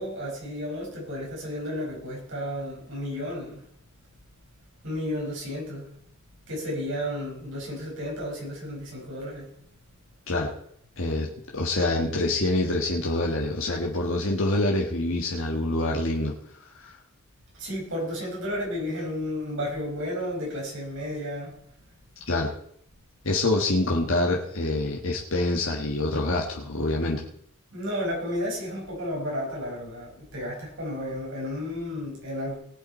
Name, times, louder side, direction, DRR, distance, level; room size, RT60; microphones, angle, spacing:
voice 1, 0.0-3.6 4.8-5.9 6.5-9.5 17.5-21.5 27.7-32.6, equal, 60° right, -2 dB, 5.5 m, -32 dB
voice 2, 11.0-16.3 16.7-17.0 22.3-22.5 23.2-27.2, left 2 dB, 60° left, -1 dB, 1.4 m, -26 dB
19.0 x 8.2 x 4.3 m, 0.68 s
head